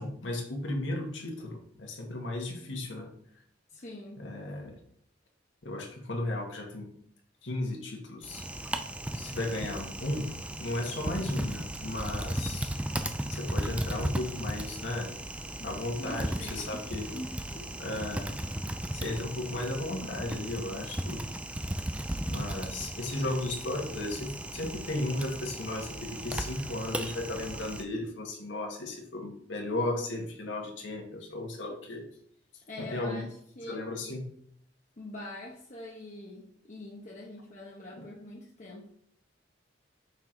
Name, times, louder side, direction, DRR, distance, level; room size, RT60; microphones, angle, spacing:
voice 1, 0.0-3.1 4.2-4.7 5.6-6.9 7.4-8.8 9.1-10.3 10.6-12.7 13.3-15.1 15.6-17.1 17.8-18.3 18.9-21.2 22.2-32.0 32.8-33.2 33.7-34.3 38.0-38.1, left 2 dB, 80° left, 1.4 m, -35 dB
voice 2, 3.7-4.3 15.6-17.7 32.7-33.9 35.0-38.9, left 1 dB, 40° left, 0.8 m, -44 dB
Typing, 8.2-27.8, right 1 dB, 5° right, 0.4 m, -36 dB
5.9 x 3.8 x 4.5 m
head